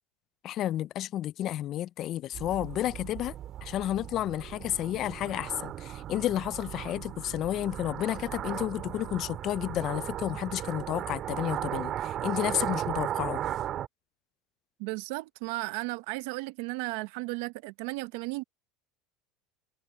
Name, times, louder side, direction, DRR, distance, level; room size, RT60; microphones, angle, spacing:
voice 1, 0.4-3.3 3.6-13.4, left 13 dB, 45° left, 0.3 m, -31 dB
sound 1, 2.3-13.9, right 11 dB, 40° right, 2.9 m, -36 dB
voice 2, 14.8-18.4, right 23 dB, 70° right, 0.9 m, -35 dB
supercardioid pair, 135°, 0 cm